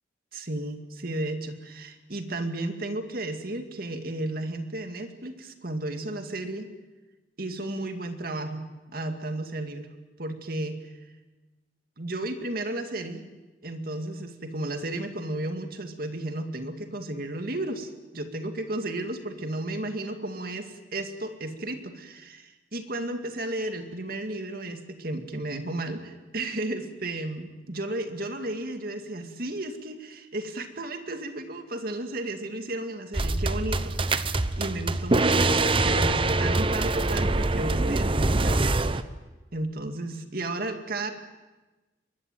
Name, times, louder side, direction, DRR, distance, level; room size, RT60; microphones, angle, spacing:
voice 1, 0.3-6.7 7.4-9.9 10.2-10.8 12.0-13.3 13.6-38.8 39.5-41.1, right 2 dB, 55° right, 6 dB, 2.3 m, -33 dB
sound 1, 33.1-39.0, right 2 dB, 30° right, 0.8 m, -24 dB
23.5 x 21.0 x 9.3 m, 1.2 s
head